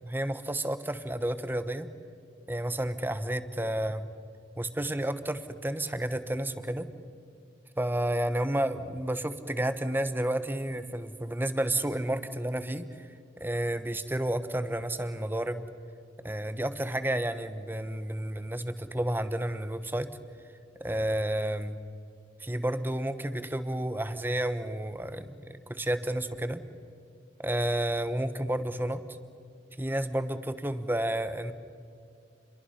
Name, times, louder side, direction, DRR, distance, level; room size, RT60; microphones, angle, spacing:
voice 1, 0.0-1.9 2.5-4.0 4.6-6.9 7.8-13.1 13.4-15.6 16.2-20.1 20.8-21.8 22.4-26.6 27.4-29.0 29.8-31.5, right 1 dB, 10° right, 11 dB, 1.1 m, -31 dB
29.0 x 22.5 x 5.7 m, 2.4 s
head